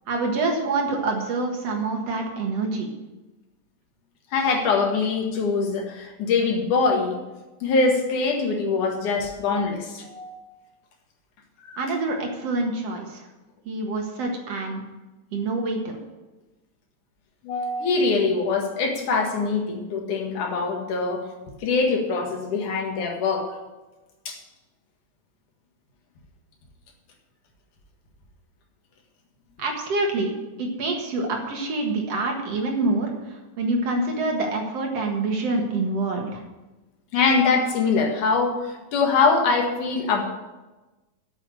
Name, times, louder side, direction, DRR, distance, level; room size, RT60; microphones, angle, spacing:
voice 1, 0.1-2.9 11.8-13.3 13.7-14.8 15.3-16.0 29.6-30.3 30.6-36.4, right 2 dB, 60° right, 2 dB, 2.6 m, -26 dB
voice 2, 4.3-7.2 7.6-10.4 11.6-11.7 17.4-21.2 21.6-23.5 24.3-24.4 37.1-40.2, left 4 dB, 85° left, 2 dB, 3.3 m, -23 dB
8.8 x 7.9 x 9.1 m, 1.1 s
omnidirectional pair, 3.4 m